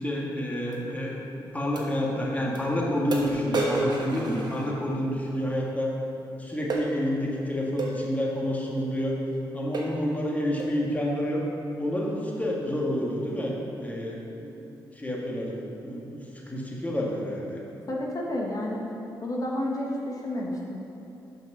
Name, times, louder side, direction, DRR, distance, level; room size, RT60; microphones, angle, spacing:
voice 1, 0.0-5.9 6.4-9.2 9.5-11.5 11.8-14.7 14.9-17.6, equal, 15° left, -3 dB, 1.7 m, -29 dB
sound 1, 0.7-0.8 1.7-1.9 2.5-2.6 3.1-5.1 6.7-6.9 7.8-8.0 8.8-8.9 9.3-9.4 9.7-10.0 10.6-10.8, right 2 dB, 55° right, 1.2 m, -31 dB
voice 2, 17.9-18.8 19.2-20.8, left 1 dB, 45° left, -2 dB, 1.2 m, -30 dB
5.8 x 5.6 x 5.6 m, 2.8 s
supercardioid pair, 55°, 9 cm